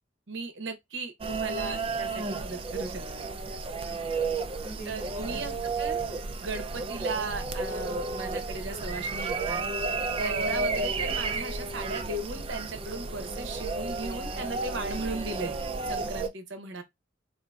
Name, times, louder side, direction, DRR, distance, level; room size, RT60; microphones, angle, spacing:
voice 1, 0.3-3.3 4.9-6.0 6.4-9.6 10.2-15.5 15.9-16.8, right 3 dB, 75° right, 0.8 m, -37 dB
sound 1, 1.2-16.3, right 3 dB, 30° right, 0.3 m, -32 dB
voice 2, 3.5-5.6, right 1 dB, 45° left, 1.2 m, -48 dB
3.7 x 2.4 x 2.3 m
head